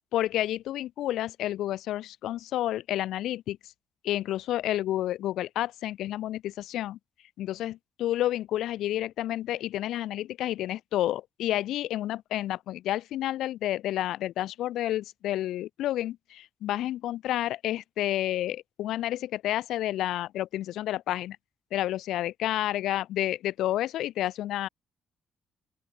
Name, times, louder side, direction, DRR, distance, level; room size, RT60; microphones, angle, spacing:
voice 1, 0.1-3.6 4.0-7.0 7.4-21.4 21.7-24.7, left 13 dB, 85° left, 0.6 m, -30 dB
open air
cardioid pair, 90°, 0 cm